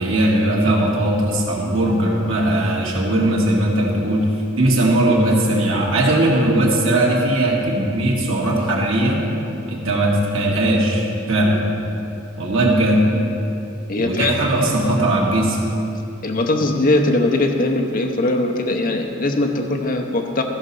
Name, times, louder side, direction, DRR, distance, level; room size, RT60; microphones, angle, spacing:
voice 1, 0.0-4.3 4.6-9.2 9.7-11.6 12.4-13.0 14.0-15.6, right 1 dB, 75° right, -3 dB, 1.8 m, -18 dB
voice 2, 13.9-14.5 16.2-20.4, left 2 dB, 40° left, 3 dB, 0.7 m, -20 dB
14.5 x 5.6 x 5.5 m, 2.6 s
head